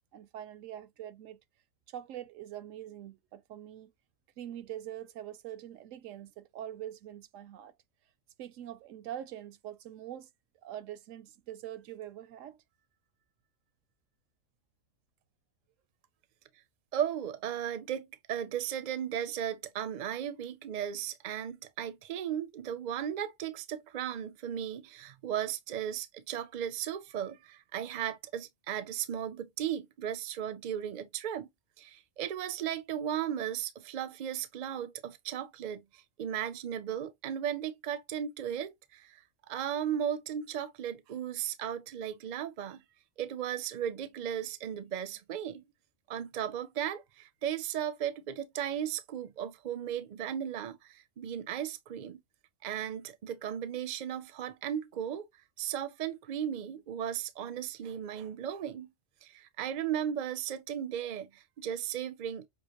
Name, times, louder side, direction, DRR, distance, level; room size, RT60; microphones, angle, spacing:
voice 1, 0.1-1.4 1.9-3.9 4.4-7.7 8.4-10.3 10.6-12.6, right 11 dB, 80° right, 0.9 m, -44 dB
voice 2, 16.9-31.5 31.8-42.8 43.2-45.6 46.1-52.2 52.6-55.3 55.6-58.9 59.2-62.5, right 9 dB, 50° right, 0.5 m, -36 dB
6.7 x 2.4 x 3.0 m
omnidirectional pair, 1.3 m